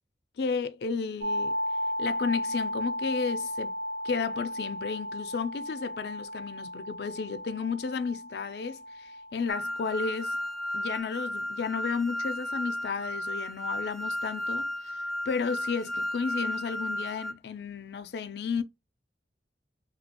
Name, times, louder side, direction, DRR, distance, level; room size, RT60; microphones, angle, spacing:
voice 1, 0.4-1.6 2.0-3.7 4.0-10.4 10.7-14.7 15.3-18.6, left 5 dB, 65° left, 0.4 m, -33 dB
sound 1, 1.2-11.0, left 1 dB, 85° right, 1.2 m, -35 dB
sound 2, 9.5-17.3, left 1 dB, ahead, 0.4 m, -34 dB
3.0 x 2.7 x 2.8 m
head